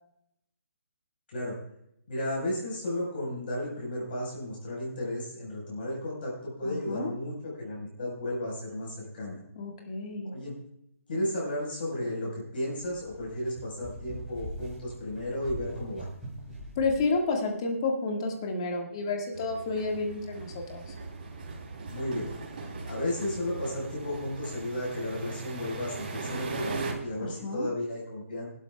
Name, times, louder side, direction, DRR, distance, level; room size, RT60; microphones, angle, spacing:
voice 1, 2.1-9.4 10.2-10.6 11.1-16.1 21.9-22.3 22.9-28.5, left 1 dB, 45° left, -3 dB, 4.6 m, -34 dB
voice 2, 6.6-7.1 9.6-10.3 16.8-20.9 27.2-27.7, left 3 dB, 20° left, 2 dB, 1.7 m, -30 dB
sound 1, 12.8-17.1, right 1 dB, 5° right, 3.2 m, -42 dB
sound 2, 19.3-26.9, right 3 dB, 40° right, 3.1 m, -39 dB
22.0 x 12.0 x 2.3 m, 0.79 s
hypercardioid pair, 175°, 7 cm